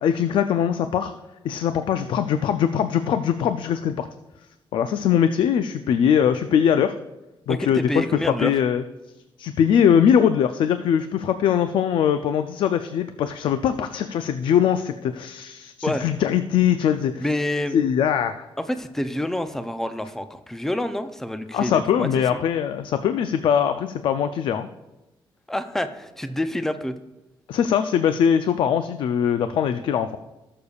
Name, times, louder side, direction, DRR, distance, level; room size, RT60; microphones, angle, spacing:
voice 1, 0.0-1.1 1.4-4.1 4.7-6.9 7.5-8.0 8.4-8.8 9.4-17.2 17.7-18.4 21.5-24.7 27.5-30.2, left 8 dB, 65° left, 9 dB, 0.4 m, -21 dB
voice 2, 7.5-8.5 15.8-16.1 17.2-17.8 18.6-22.4 25.5-26.9, left 1 dB, 5° left, 10 dB, 0.4 m, -27 dB
18.5 x 6.7 x 2.4 m, 1.0 s
wide cardioid pair, 180°, 9 cm